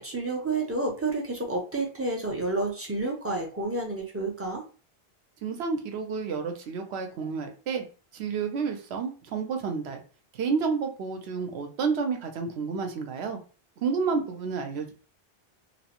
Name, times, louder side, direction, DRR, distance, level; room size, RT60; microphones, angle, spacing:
voice 1, 0.0-4.6, right 2 dB, 20° right, 0 dB, 0.4 m, -30 dB
voice 2, 5.4-7.8 8.1-10.0 10.3-13.4 13.8-14.9, right 5 dB, 90° right, 4 dB, 0.9 m, -30 dB
2.9 x 2.0 x 2.8 m, 0.37 s
omnidirectional pair, 1.1 m